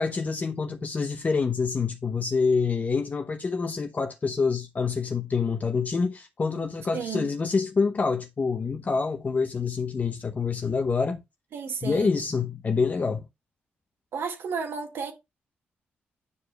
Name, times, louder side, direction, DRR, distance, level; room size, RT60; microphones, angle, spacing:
voice 1, 0.0-11.2 11.8-13.2, left 4 dB, 40° left, 0.7 m, -26 dB
voice 2, 6.9-7.3 11.5-12.2 14.1-15.1, right 6 dB, 75° right, 1.9 m, -32 dB
9.6 x 4.9 x 2.3 m
cardioid pair, 75°, 4 cm